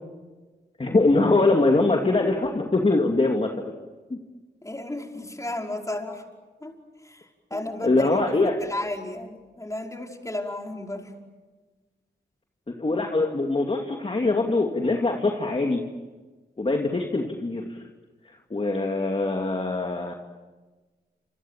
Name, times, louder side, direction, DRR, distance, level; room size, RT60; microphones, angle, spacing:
voice 1, 0.8-3.7 4.1-4.2 7.5-8.6 12.7-15.8 16.6-17.8 18.5-20.1, left 2 dB, 35° left, 2 dB, 2.6 m, -23 dB
voice 2, 4.6-6.2 6.6-8.3 8.6-11.1, left 1 dB, 15° left, 1 dB, 5.3 m, -34 dB
29.0 x 27.5 x 7.5 m, 1.3 s
cardioid pair, 65°, 18 cm